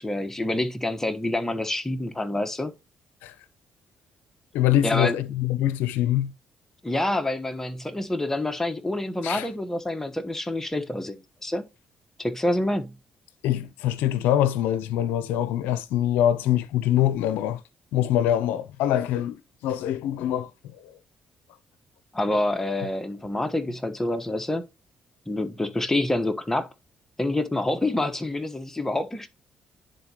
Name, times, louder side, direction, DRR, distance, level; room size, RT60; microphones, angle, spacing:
voice 1, 0.0-2.7 4.8-5.2 6.8-11.2 11.4-11.6 12.2-13.0 22.1-24.6 25.3-26.7 27.2-29.3, left 1 dB, 15° left, 1.1 m, -27 dB
voice 2, 4.5-6.3 9.2-9.5 13.4-17.6 17.9-20.5, left 12 dB, 90° left, 0.5 m, -24 dB
10.5 x 3.9 x 2.9 m
supercardioid pair, 65°, 3 cm